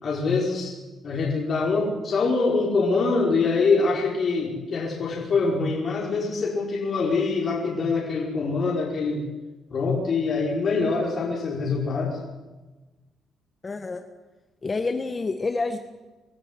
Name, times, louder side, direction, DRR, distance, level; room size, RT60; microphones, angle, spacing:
voice 1, 0.0-0.7 1.0-9.2 9.7-12.2, left 4 dB, 50° left, -3 dB, 5.5 m, -24 dB
voice 2, 13.6-14.0 14.6-15.8, left 3 dB, 30° left, 6 dB, 1.6 m, -28 dB
25.0 x 13.0 x 9.7 m, 1.2 s
cardioid pair, 90°, 0 cm